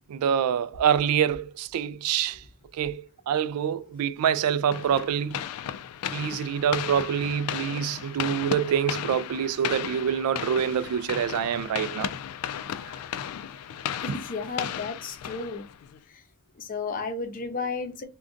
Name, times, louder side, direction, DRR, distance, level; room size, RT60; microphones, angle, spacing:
voice 1, 0.1-2.4 2.7-5.4 6.1-12.1 14.1-14.2, right 8 dB, 85° right, 0.3 m, -26 dB
sound 1, 4.7-16.0, left 9 dB, 85° left, 0.3 m, -35 dB
voice 2, 12.7-13.1 14.0-15.6 16.6-18.1, left 4 dB, 40° left, 0.6 m, -33 dB
2.5 x 2.2 x 3.7 m
head